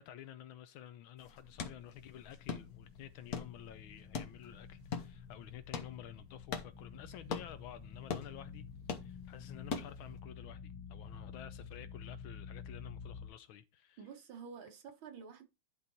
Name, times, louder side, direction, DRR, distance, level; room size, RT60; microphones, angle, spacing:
voice 1, 0.0-8.7 9.0-14.0, left 10 dB, 80° left, 1.5 m, -51 dB
sound 1, 1.2-10.2, left 5 dB, 55° left, 1.4 m, -44 dB
sound 2, 1.9-13.3, left 6 dB, 15° left, 1.2 m, -51 dB
voice 2, 14.0-15.4, right 6 dB, 80° right, 2.1 m, -49 dB
11.0 x 3.9 x 4.1 m
omnidirectional pair, 2.2 m